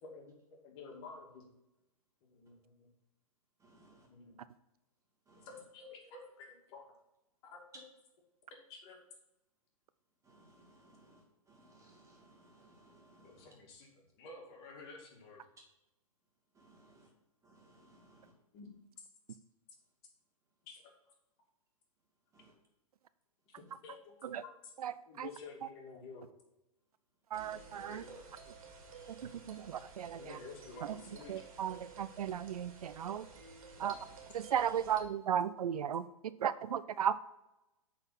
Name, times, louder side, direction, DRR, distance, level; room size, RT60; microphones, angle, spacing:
voice 1, 0.0-1.4 2.3-2.9 4.1-4.4 5.4-6.2 6.7-6.8 7.4-7.7 8.7-9.0 13.2-13.9 14.1-15.4 18.5-18.7 19.0-19.1 20.6-20.8 23.5-23.6 23.8-24.7 25.1-26.3 27.9-28.2 29.6-29.7 30.1-31.4, left 4 dB, 45° left, 0 dB, 2.3 m, -51 dB
voice 2, 3.6-4.1 5.3-5.5 10.2-13.5 16.5-17.1 17.4-18.3 22.3-22.5 27.4-27.6 33.8-34.1, right 2 dB, 15° right, -1 dB, 2.1 m, -63 dB
voice 3, 24.8-25.3 27.3-28.0 29.5-30.2 31.3-33.3 33.8-34.0 34.3-36.0 36.4-37.3, right 9 dB, 80° right, 15 dB, 0.5 m, -35 dB
sound 1, 27.3-35.0, right 5 dB, 65° right, 1.9 m, -53 dB
8.2 x 4.1 x 5.7 m, 0.94 s
hypercardioid pair, 130°, 19 cm